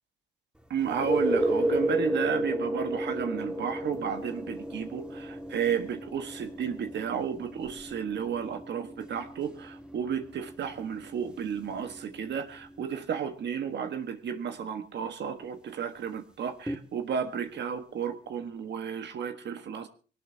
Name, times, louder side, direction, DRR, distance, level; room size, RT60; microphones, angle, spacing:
voice 1, 0.7-19.9, right 7 dB, 60° right, 7 dB, 1.4 m, -33 dB
sound 1, 0.8-12.4 16.7-16.8, right 1 dB, 5° right, 1.9 m, -33 dB
20.5 x 18.5 x 2.8 m, 0.37 s
cardioid pair, 90°, 20 cm